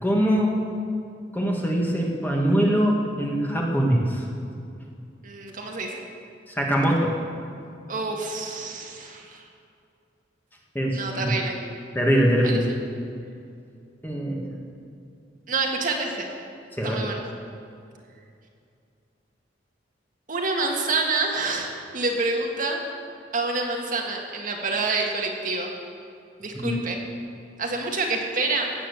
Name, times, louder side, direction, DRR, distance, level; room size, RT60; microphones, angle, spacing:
voice 1, 0.0-0.5 1.3-4.3 6.5-7.1 10.8-11.3 12.0-12.6 14.0-14.5 16.8-17.0 26.5-26.8, equal, 10° left, -1 dB, 1.8 m, -23 dB
voice 2, 5.2-6.0 7.9-9.4 10.9-11.6 12.4-12.6 15.5-16.3 16.8-17.2 20.3-22.8 23.3-25.7 26.4-27.0 27.6-28.7, right 3 dB, 45° right, 1 dB, 1.8 m, -27 dB
16.5 x 8.9 x 7.0 m, 2.5 s
head